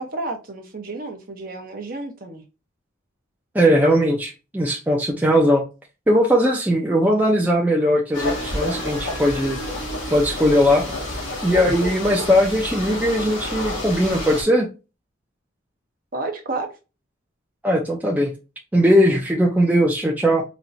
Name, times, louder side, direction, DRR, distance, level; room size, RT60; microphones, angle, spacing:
voice 1, 0.0-2.5 16.1-16.7, right 2 dB, 45° right, 0.9 m, -31 dB
voice 2, 3.5-5.6 6.1-9.6 10.1-11.0 11.4-14.7 17.6-18.3 18.7-20.4, equal, 10° right, 0.5 m, -19 dB
sound 1, 8.1-14.4, left 1 dB, 70° left, 2.3 m, -29 dB
4.3 x 2.9 x 2.6 m
head